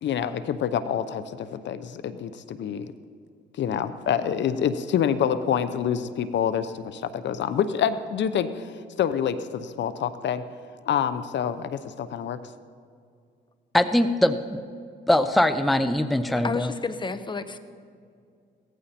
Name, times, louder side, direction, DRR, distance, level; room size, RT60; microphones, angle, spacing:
voice 1, 0.0-2.9 3.6-10.4 10.9-12.4, left 8 dB, 65° left, 12 dB, 0.8 m, -27 dB
voice 2, 13.7-14.6 15.1-16.7, left 1 dB, ahead, 10 dB, 0.6 m, -22 dB
voice 3, 16.3-17.6, left 4 dB, 25° left, 11 dB, 0.9 m, -31 dB
17.0 x 14.5 x 4.3 m, 2.3 s
cardioid pair, 90°, 20 cm